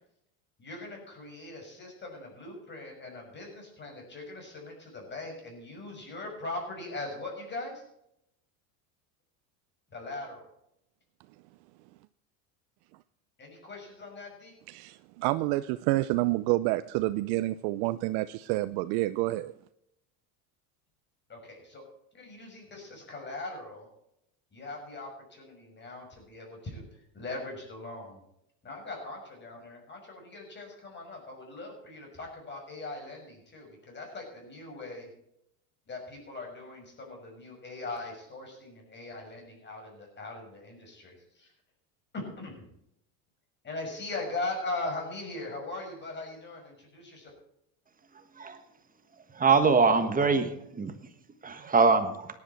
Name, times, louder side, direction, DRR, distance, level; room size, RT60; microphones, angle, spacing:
voice 1, 0.6-7.8 9.9-10.5 13.4-14.5 21.3-21.8 22.1-23.9 24.5-28.2 28.6-35.1 35.9-41.5 42.1-42.7 43.6-47.3, left 2 dB, 25° left, 6.0 m, -40 dB
voice 2, 14.7-19.5, right 18 dB, 60° right, 0.6 m, -28 dB
voice 3, 49.4-50.9 51.4-52.3, right 4 dB, 20° right, 1.4 m, -23 dB
17.0 x 10.5 x 4.4 m
supercardioid pair, 125°, 43 cm